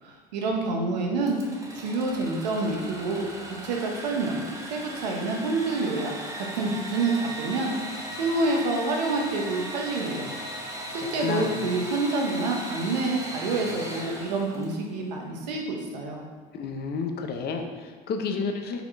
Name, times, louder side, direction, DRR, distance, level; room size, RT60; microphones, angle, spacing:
voice 1, 0.0-1.4 1.7-7.7 8.2-10.3 10.9-16.2, right 3 dB, 80° right, 1 dB, 1.1 m, -28 dB
Engine / Sawing, 1.2-14.9, right 1 dB, 15° right, 1.6 m, -38 dB
voice 2, 10.9-11.7 16.5-18.8, left 5 dB, 50° left, 5 dB, 0.8 m, -31 dB
5.8 x 3.7 x 4.7 m, 1.5 s
hypercardioid pair, 65°, 21 cm